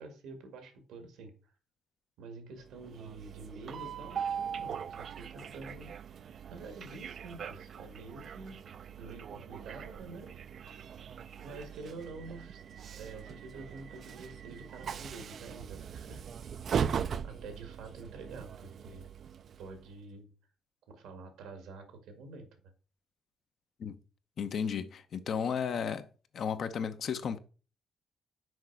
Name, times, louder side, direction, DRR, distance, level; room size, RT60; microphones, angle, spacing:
voice 1, 0.0-1.3 2.2-5.9 6.5-8.6 9.0-10.3 11.4-12.6 12.9-16.2 17.2-19.1 19.6-20.3 20.9-22.5, right 3 dB, 85° right, 1.9 m, -47 dB
Train, 2.7-19.9, right 7 dB, 55° right, 0.4 m, -40 dB
voice 2, 24.4-26.1 26.3-27.4, left 7 dB, 60° left, 0.8 m, -34 dB
6.3 x 4.9 x 4.6 m
cardioid pair, 90°, 0 cm